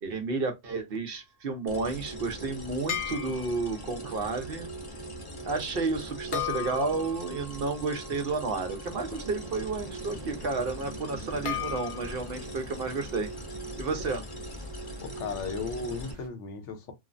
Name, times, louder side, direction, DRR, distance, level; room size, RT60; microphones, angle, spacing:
voice 1, 0.0-4.7 5.4-13.3 13.8-14.2, right 3 dB, 60° right, 0.8 m, -31 dB
sound 1, 1.7-16.1, right 1 dB, 25° left, 0.6 m, -41 dB
sound 2, 2.9-3.9 6.3-9.4 11.5-12.4, left 10 dB, 60° left, 0.9 m, -37 dB
sound 3, 8.9-16.3, equal, 40° right, 0.4 m, -46 dB
voice 2, 15.0-16.9, left 5 dB, 80° left, 1.0 m, -35 dB
3.0 x 2.0 x 2.4 m
omnidirectional pair, 1.2 m